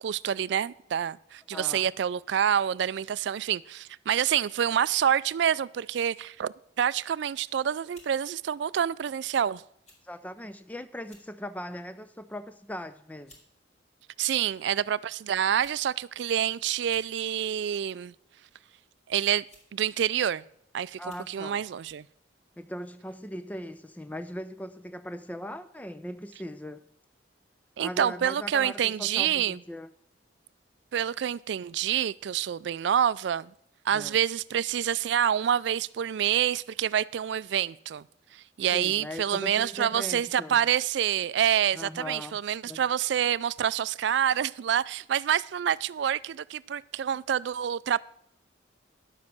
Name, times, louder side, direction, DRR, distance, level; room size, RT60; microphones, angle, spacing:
voice 1, 0.0-9.6 14.2-18.1 19.1-19.4 19.7-20.4 20.7-21.0 21.3-22.0 27.8-29.6 30.9-33.5 33.8-38.1 38.3-48.0, right 9 dB, 65° right, 0.3 m, -27 dB
voice 2, 1.5-1.9 10.0-13.4 21.0-21.6 22.6-26.8 27.8-29.9 33.9-34.2 38.7-40.6 41.7-42.4 42.6-42.8, equal, 10° left, 0.5 m, -39 dB
sound 1, 7.9-8.1 9.0-9.2 9.8-10.0 10.3-10.4 11.0-11.3 11.8-12.1 12.9-13.0 13.3-13.5 14.5-14.6 15.4-15.8 16.1-16.2 16.7-17.1 18.3-18.6 19.4-19.8 20.4-20.5 21.0-21.3 21.8-22.0, left 2 dB, 35° left, 2.6 m, -56 dB
10.5 x 7.4 x 6.0 m
head